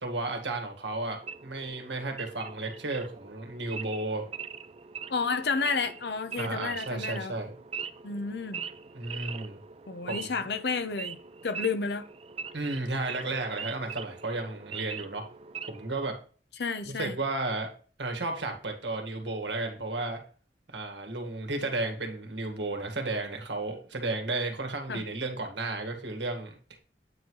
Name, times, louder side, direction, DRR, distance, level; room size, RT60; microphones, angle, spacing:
voice 1, 0.0-4.3 6.4-7.5 9.0-9.6 10.1-10.3 12.5-15.2 15.7-16.1 16.8-17.7 18.0-20.2 20.7-26.8, right 2 dB, 85° right, 1.8 m, -33 dB
Wild animals / Idling, 1.2-16.0, right 6 dB, 35° right, 0.4 m, -42 dB
voice 2, 5.1-7.3 8.0-8.6 9.9-11.2 11.4-12.0 16.6-17.2 24.9-25.0, left 4 dB, 65° left, 0.8 m, -31 dB
8.9 x 3.2 x 5.4 m
head